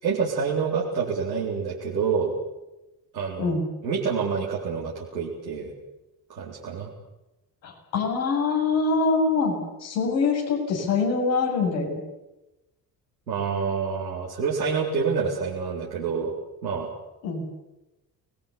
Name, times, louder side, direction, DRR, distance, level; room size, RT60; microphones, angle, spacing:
voice 1, 0.0-2.3 3.1-3.6 3.8-5.7 6.3-6.9 13.3-16.3 16.6-16.9, right 5 dB, 90° right, -5 dB, 4.2 m, -27 dB
voice 2, 7.6-12.0 17.2-17.4, left 4 dB, 80° left, -1 dB, 7.7 m, -24 dB
30.0 x 20.5 x 8.6 m, 0.99 s
figure-of-eight pair, 50°, 50 cm